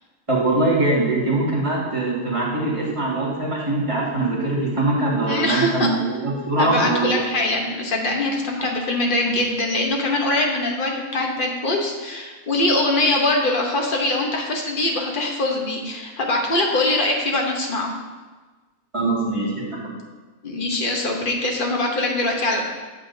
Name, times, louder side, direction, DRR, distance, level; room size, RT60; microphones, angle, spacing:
voice 1, 0.3-7.2 9.3-9.4 18.9-19.6, right 2 dB, 20° right, -7 dB, 1.9 m, -22 dB
voice 2, 5.3-5.9 6.6-17.9 20.4-22.6, left 2 dB, 40° left, 1 dB, 1.0 m, -22 dB
8.3 x 7.0 x 2.7 m, 1.3 s
omnidirectional pair, 1.5 m